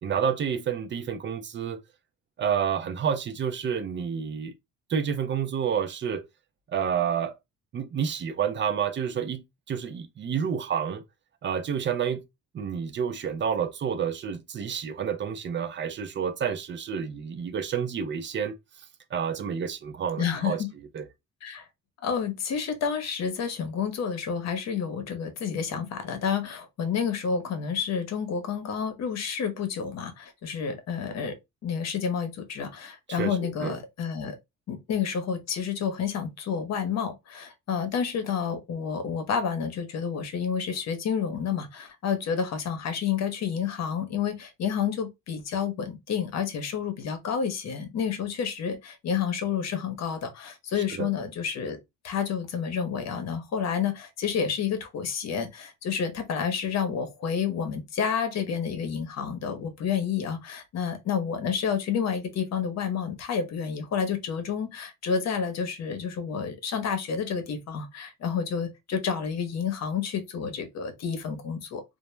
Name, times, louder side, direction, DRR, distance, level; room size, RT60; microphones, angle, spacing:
voice 1, 0.0-1.8 2.4-4.5 4.9-6.2 6.7-7.3 7.7-11.0 11.4-12.2 12.5-18.6 19.1-20.6 20.9-21.1 33.2-33.7 50.9-51.1, right 7 dB, 40° right, 0.4 m, -29 dB
voice 2, 20.2-20.7 21.4-21.7 22.0-31.4 31.6-34.4 34.7-51.8 52.0-71.8, left 7 dB, 60° left, 0.8 m, -30 dB
2.1 x 2.1 x 3.0 m
cardioid pair, 90°, 30 cm